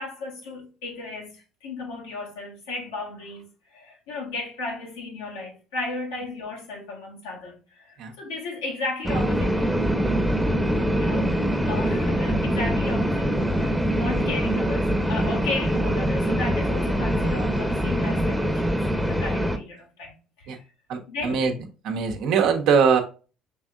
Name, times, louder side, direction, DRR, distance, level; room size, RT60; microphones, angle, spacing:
voice 1, 0.0-3.4 3.7-9.8 11.0-11.4 11.6-20.6 21.1-21.4, left 3 dB, 85° left, 1.5 m, -34 dB
sound 1, 9.0-19.6, equal, 5° right, 0.9 m, -24 dB
voice 2, 20.9-21.5 21.8-23.0, right 6 dB, 70° right, 0.9 m, -21 dB
5.3 x 3.4 x 2.4 m
hypercardioid pair, 60°, 0 cm